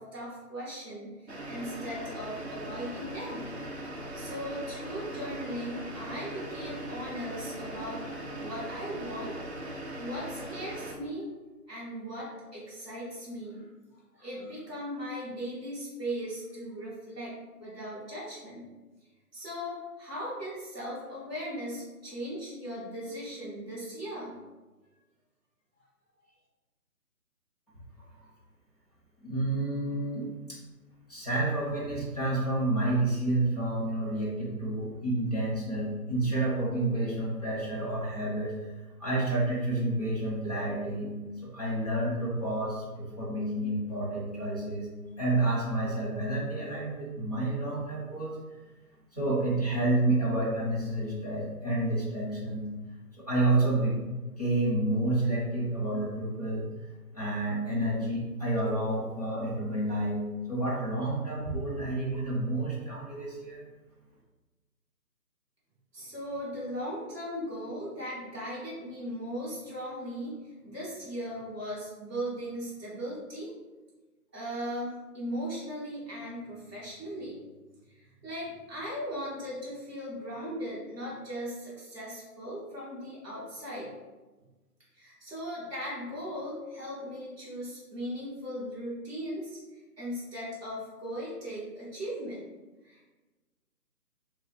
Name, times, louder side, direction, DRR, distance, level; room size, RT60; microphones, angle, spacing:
voice 1, 0.0-3.5 4.1-8.0 8.4-9.4 10.0-11.3 11.7-13.7 14.1-17.3 17.6-18.7 19.3-24.3 65.9-70.3 70.6-73.5 74.3-77.4 77.9-83.9 84.9-89.6 90.0-92.4 92.8-93.1, equal, 10° right, -15 dB, 1.5 m, -38 dB
sound 1, 1.3-11.0, right 1 dB, 45° right, 0.5 m, -40 dB
voice 2, 29.2-30.6 31.1-38.7 39.0-41.1 41.4-44.9 45.2-48.3 49.1-52.7 53.2-54.0 54.4-56.7 57.1-63.6, right 2 dB, 25° left, -7 dB, 0.8 m, -29 dB
6.1 x 2.3 x 3.2 m, 1.2 s
hypercardioid pair, 175°, 47 cm